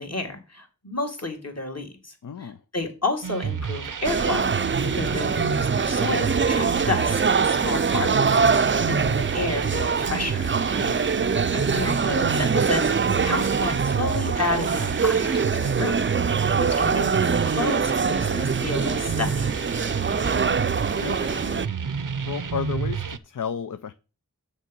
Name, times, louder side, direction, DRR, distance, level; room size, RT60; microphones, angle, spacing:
voice 1, 0.0-2.1 2.4-4.6 4.9-10.6 11.1-16.0 16.3-19.5, left 2 dB, 50° left, 2.2 m, -31 dB
voice 2, 2.2-2.6 10.8-11.2 20.0-20.3 21.0-21.7 22.3-23.9, left 7 dB, 75° left, 0.5 m, -34 dB
sound 1, 3.2-23.2, right 6 dB, 75° right, 0.6 m, -30 dB
sound 2, 4.0-21.7, right 5 dB, 40° right, 0.4 m, -24 dB
7.2 x 6.6 x 5.2 m
wide cardioid pair, 45°, 32 cm